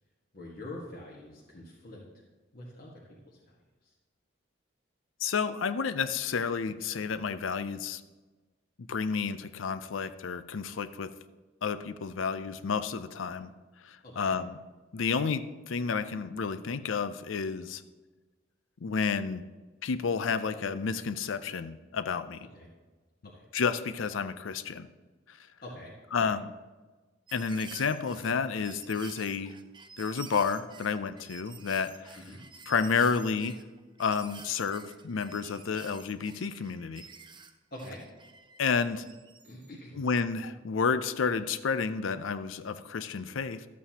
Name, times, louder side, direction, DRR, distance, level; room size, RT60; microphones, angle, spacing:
voice 1, 0.3-2.0 2.5-2.9 3.2-3.6 3.8-3.9 14.0-14.3 22.5-22.7 23.3-23.5 25.6-25.9 26.2-26.4 32.1-32.4 37.7-38.0 39.4-40.0, left 1 dB, 50° left, -5 dB, 1.6 m, -45 dB
voice 2, 5.2-8.0 8.8-11.1 11.6-13.5 13.8-14.6 14.9-17.8 18.8-19.4 19.8-22.5 23.5-24.9 25.3-25.4 26.1-26.5 27.3-29.5 30.0-32.2 32.7-33.6 34.0-37.1 38.6-39.0 39.9-43.7, left 5 dB, 90° left, 13 dB, 0.5 m, -31 dB
sound 1, 27.3-39.7 40.4-40.5, right 5 dB, 25° right, 0.6 m, -50 dB
13.0 x 8.4 x 2.9 m, 1.3 s
head